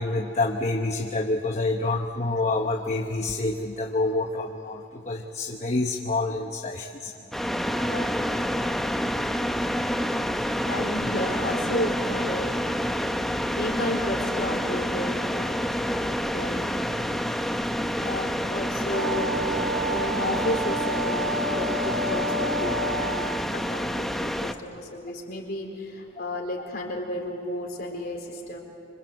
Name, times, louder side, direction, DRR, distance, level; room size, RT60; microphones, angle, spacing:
voice 1, 0.0-7.1 7.7-8.0 11.0-11.1 17.8-17.9 23.0-23.1, left 2 dB, 35° left, 3 dB, 1.0 m, -28 dB
sound 1, 7.3-24.5, equal, ahead, 0.8 m, -28 dB
voice 2, 7.8-8.2 10.4-12.6 13.5-15.7 16.3-16.6 18.0-19.4 19.8-28.6, left 1 dB, 50° left, 1 dB, 4.2 m, -32 dB
Wind instrument woodwind instrument, 18.9-23.6, right 1 dB, 45° right, 2.3 m, -30 dB
26.0 x 26.0 x 8.0 m, 2.6 s
head